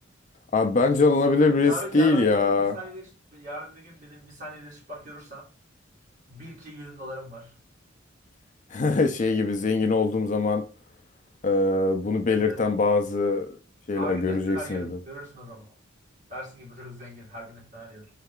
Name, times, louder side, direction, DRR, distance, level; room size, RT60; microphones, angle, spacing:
voice 1, 0.5-2.7 8.7-10.6 11.4-13.5 13.9-15.0, left 3 dB, 40° left, 0.5 m, -22 dB
voice 2, 1.6-5.5 6.3-7.5 12.3-12.6 13.9-15.7 16.3-18.1, right 1 dB, 40° right, 1.8 m, -39 dB
3.3 x 3.2 x 3.6 m
head